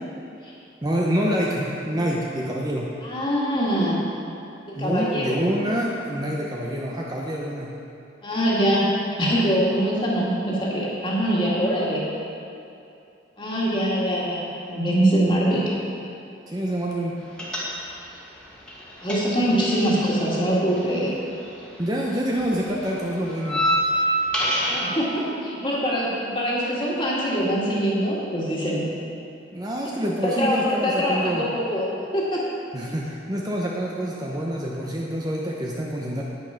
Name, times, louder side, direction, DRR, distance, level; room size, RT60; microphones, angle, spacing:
voice 1, 0.8-2.9 4.8-7.7 16.5-17.1 21.8-23.7 29.5-31.5 32.7-36.2, equal, 20° right, -3 dB, 0.8 m, -26 dB
voice 2, 3.0-4.0 4.7-5.4 8.2-8.9 9.2-12.1 13.4-15.7 19.0-21.1 24.7-28.9 30.2-32.4, equal, 25° left, -5 dB, 2.0 m, -23 dB
sound 1, 17.4-18.2 18.4-21.8 22.1-24.9, equal, 5° left, 1.7 m, -26 dB
9.6 x 8.9 x 5.8 m, 2.7 s
head